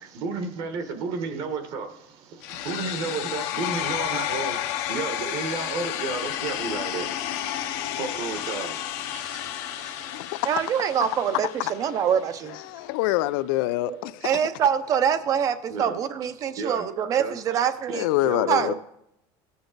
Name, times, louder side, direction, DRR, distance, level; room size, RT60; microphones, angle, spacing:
voice 1, 0.1-9.6 9.9-10.2 14.2-14.3 15.7-16.0 16.6-16.9 17.2-17.6 17.9-18.0 18.2-18.7, right 4 dB, 50° right, 1.2 m, -33 dB
sound 1, 2.4-12.4, left 11 dB, 65° left, 0.9 m, -31 dB
voice 2, 9.2-9.5 9.7-9.9 10.4-12.6 13.9-18.1 18.5-18.7, right 8 dB, 30° right, 0.6 m, -25 dB
voice 3, 12.7-14.2 17.9-18.7, left 17 dB, 90° left, 0.4 m, -25 dB
17.5 x 7.0 x 3.9 m
cardioid pair, 170°, 11 cm